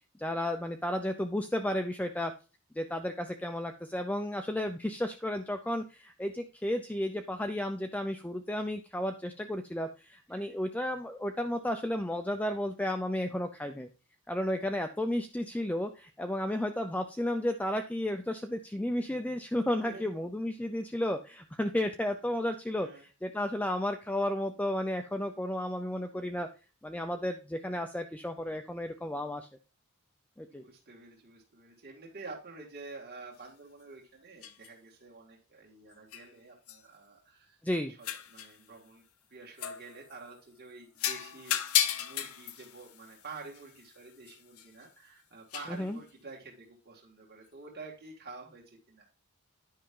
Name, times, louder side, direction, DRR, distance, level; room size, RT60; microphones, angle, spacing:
voice 1, 0.2-2.3 2.7-13.9 14.3-26.5 26.8-29.5 30.4-30.6 37.6-37.9 45.7-46.0, left 1 dB, 5° left, 6 dB, 0.5 m, -33 dB
voice 2, 19.8-20.2 22.8-23.0 30.5-37.6 38.0-39.0 39.3-49.1, right 3 dB, 45° right, -2 dB, 2.0 m, -49 dB
sound 1, 33.4-33.5 34.4-34.7 36.1-36.3 36.7-36.8 38.0-38.6 39.6-40.3 41.0-44.8 45.5-45.8, left 11 dB, 75° left, 0.8 m, -35 dB
10.0 x 5.6 x 3.7 m, 0.33 s
head